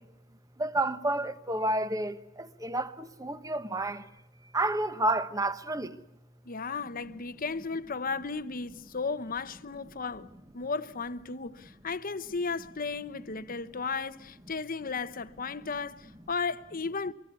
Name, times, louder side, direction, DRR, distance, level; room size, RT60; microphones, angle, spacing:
voice 1, 0.6-2.1 2.6-4.0 4.5-5.9, right 2 dB, 15° right, 1.2 m, -29 dB
voice 2, 6.4-10.3 10.5-17.1, left 4 dB, 45° left, 1.0 m, -34 dB
24.5 x 23.5 x 8.3 m
head